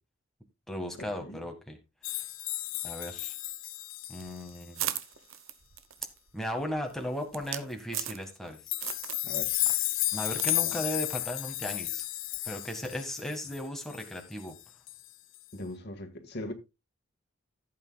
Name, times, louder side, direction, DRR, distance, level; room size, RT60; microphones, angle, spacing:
voice 1, 0.7-1.8 2.1-2.3 2.8-3.4 4.1-4.9 6.3-8.8 10.1-12.1 12.4-14.5, equal, ahead, 1.8 m, -36 dB
sound 1, 2.0-4.6 8.7-14.6 14.9-15.1 15.3-15.4, left 17 dB, 75° left, 0.7 m, -33 dB
sound 2, 4.1-8.5 8.8-9.3 9.6-10.6 10.9-11.0 11.6-11.9, right 12 dB, 90° right, 1.0 m, -38 dB
voice 2, 9.2-9.8 10.6-10.7 15.5-16.5, left 1 dB, 55° left, 1.8 m, -40 dB
15.0 x 8.5 x 2.3 m
head